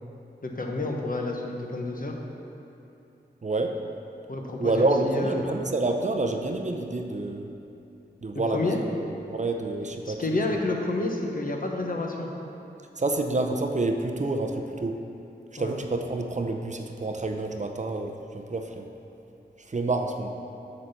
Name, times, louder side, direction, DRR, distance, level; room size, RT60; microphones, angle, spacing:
voice 1, 0.4-2.1 4.3-5.5 8.3-8.8 10.0-12.3 15.6-15.7, left 2 dB, 50° left, 1 dB, 1.0 m, -30 dB
voice 2, 3.4-3.8 4.6-7.5 8.2-8.8 9.3-10.4 13.0-15.0 15.5-18.9 19.7-20.3, right 2 dB, 40° right, 4 dB, 0.6 m, -28 dB
7.4 x 4.1 x 6.6 m, 2.9 s
cardioid pair, 50°, 18 cm